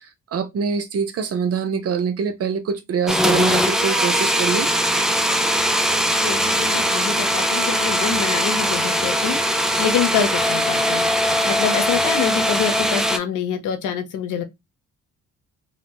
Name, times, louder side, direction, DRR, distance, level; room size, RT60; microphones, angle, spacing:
voice 1, 0.3-4.7, right 6 dB, 50° right, 0.6 m, -24 dB
sound 1, 3.1-13.2, equal, ahead, 0.3 m, -20 dB
voice 2, 6.2-9.4 9.8-14.4, left 7 dB, 85° left, 0.7 m, -26 dB
2.7 x 2.2 x 2.9 m
cardioid pair, 90°, 30 cm